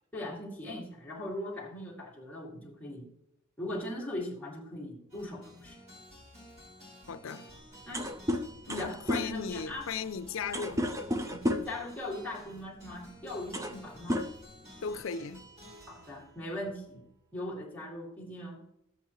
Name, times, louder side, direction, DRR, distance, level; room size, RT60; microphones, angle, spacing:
voice 1, 0.1-3.1 3.6-5.8 7.8-8.1 8.7-9.9 11.3-14.2 15.9-17.0 17.3-18.6, left 1 dB, 10° left, 2.4 m, -40 dB
sound 1, 5.1-17.4, equal, 35° right, 4.3 m, -54 dB
voice 2, 7.1-7.5 8.7-10.9 13.7-13.9 14.8-15.4, left 6 dB, 75° left, 0.5 m, -37 dB
sound 2, 7.5-7.6 7.8-11.8 12.8-13.0 13.3-13.8 14.1-15.0, left 1 dB, 15° right, 0.6 m, -33 dB
13.0 x 8.1 x 3.1 m
head